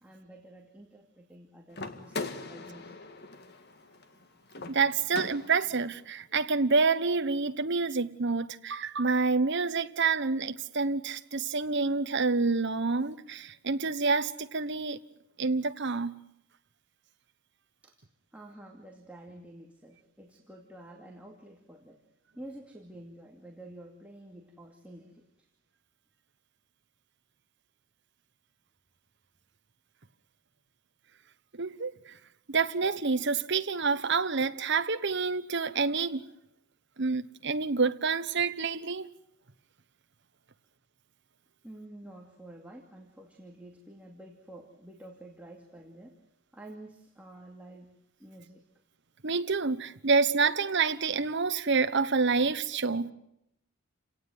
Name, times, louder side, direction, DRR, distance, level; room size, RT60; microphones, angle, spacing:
voice 1, 0.0-3.0 17.8-18.0 18.3-22.0 22.3-25.3 41.6-46.2 46.5-47.9 48.2-48.6, right 1 dB, 5° right, 2.4 m, -49 dB
sound 1, 1.7-5.8, left 3 dB, 50° left, 1.8 m, -41 dB
voice 2, 4.7-15.0 15.4-16.1 31.5-32.1 32.5-36.2 37.0-39.1 49.2-53.1, right 4 dB, 55° right, 1.1 m, -28 dB
29.0 x 18.0 x 9.3 m
head